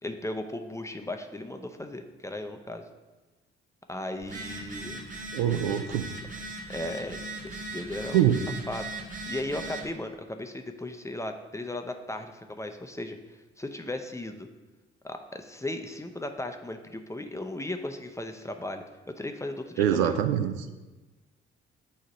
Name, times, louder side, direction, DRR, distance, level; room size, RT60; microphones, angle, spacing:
voice 1, 0.0-2.9 3.9-5.1 5.5-5.6 6.7-8.3 8.7-14.5 15.0-20.1, left 1 dB, 10° left, 6 dB, 0.5 m, -36 dB
Telephone, 4.2-9.9, right 2 dB, 25° right, 1.1 m, -39 dB
voice 2, 5.3-6.0 8.1-8.4 19.8-20.7, right 10 dB, 70° right, 9 dB, 0.5 m, -24 dB
8.3 x 2.9 x 5.4 m, 1.2 s
figure-of-eight pair, 40°, 32 cm